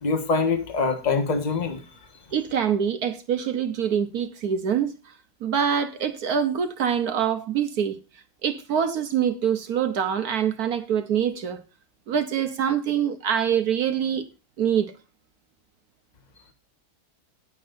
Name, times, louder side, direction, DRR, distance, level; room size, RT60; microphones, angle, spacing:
voice 1, 0.0-1.8, left 4 dB, 25° left, 1.5 m, -24 dB
voice 2, 2.3-4.9 5.4-8.0 8.4-11.6 12.1-14.2 14.6-14.9, right 8 dB, 65° right, 1.3 m, -25 dB
19.0 x 7.5 x 2.6 m
omnidirectional pair, 1.7 m